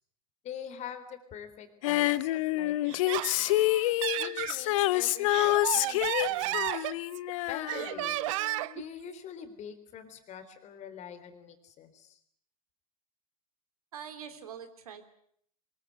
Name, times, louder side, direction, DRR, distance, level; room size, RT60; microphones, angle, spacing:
voice 1, 0.4-3.6 4.2-6.9 7.5-8.2 8.7-12.2, left 8 dB, 35° left, 9 dB, 3.6 m, -45 dB
Female singing, 1.8-8.5 8.7-8.8, left 17 dB, 55° left, 0.9 m, -28 dB
Laughter, 2.9-4.6 5.1-7.3 7.7-8.8, right 17 dB, 55° right, 0.9 m, -33 dB
voice 2, 13.9-15.1, right 8 dB, 70° right, 9 dB, 3.1 m, -44 dB
24.0 x 21.5 x 8.1 m, 0.66 s
figure-of-eight pair, 85°, 20 cm